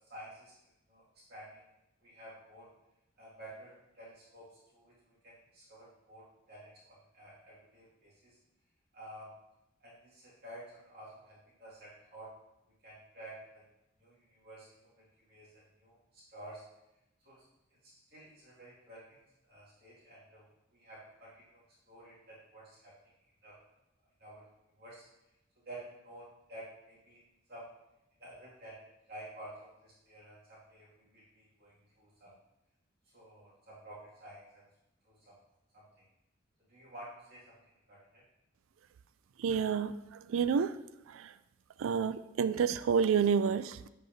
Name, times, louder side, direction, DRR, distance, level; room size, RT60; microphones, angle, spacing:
voice 1, 0.1-0.5 0.9-1.0 1.3-1.6 2.0-2.7 3.2-8.4 8.9-9.3 9.8-12.3 12.8-13.6 14.0-16.6 17.2-17.4 17.7-22.9 23.4-23.6 24.2-24.4 24.7-25.0 25.7-27.2 27.5-27.7 28.2-32.3 33.1-34.6 35.0-35.4 35.7-35.9 36.7-37.5 37.9-38.2, right 1 dB, 55° right, -8 dB, 2.2 m, -51 dB
voice 2, 39.4-40.7 41.1-41.3 41.8-43.9, right 6 dB, 85° right, 14 dB, 0.3 m, -29 dB
10.5 x 4.7 x 2.7 m, 0.90 s
head